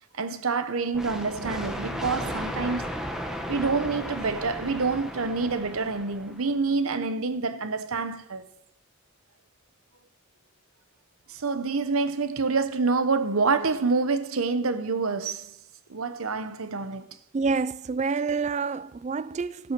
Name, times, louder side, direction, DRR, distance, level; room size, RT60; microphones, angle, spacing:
voice 1, 0.1-2.9 3.5-8.5 11.3-15.5 15.9-17.1, right 4 dB, 70° right, 0.9 m, -27 dB
sound 1, 0.9-6.5, equal, ahead, 1.2 m, -35 dB
voice 2, 17.3-19.7, right 4 dB, 30° right, 0.3 m, -28 dB
16.5 x 6.1 x 6.0 m
head